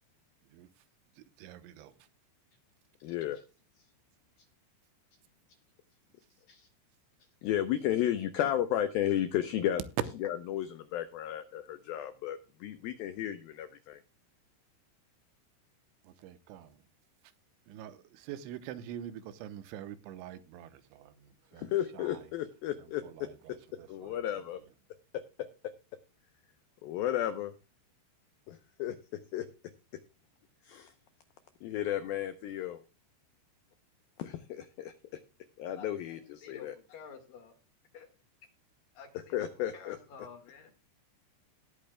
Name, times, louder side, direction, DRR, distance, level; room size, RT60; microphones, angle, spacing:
voice 1, 1.2-1.9 16.0-16.8 17.7-22.2 23.0-24.2, right 10 dB, 85° right, 3.2 m, -46 dB
voice 2, 3.0-3.4 6.5-6.7 7.4-9.8 10.2-14.0 21.5-23.3 23.9-24.6 26.8-27.5 28.5-29.0 29.3-29.5 30.6-30.9 31.6-32.8 34.2-34.9 35.6-36.8 39.1-40.0, left 11 dB, 85° left, 2.1 m, -33 dB
voice 3, 35.7-37.5 37.9-38.1 38.9-39.5 39.7-40.7, left 6 dB, 60° left, 2.9 m, -50 dB
19.0 x 8.6 x 2.2 m
omnidirectional pair, 5.3 m